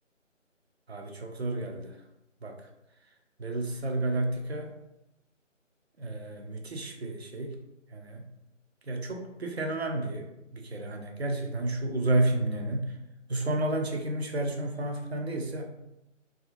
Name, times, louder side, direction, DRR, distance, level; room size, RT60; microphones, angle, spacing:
voice 1, 0.9-2.0 2.4-2.7 3.4-4.8 6.0-7.6 7.9-8.3 8.8-13.0 13.3-15.6, right 2 dB, 55° right, 3 dB, 0.5 m, -31 dB
2.7 x 2.4 x 2.5 m, 0.88 s
figure-of-eight pair, 160°, 39 cm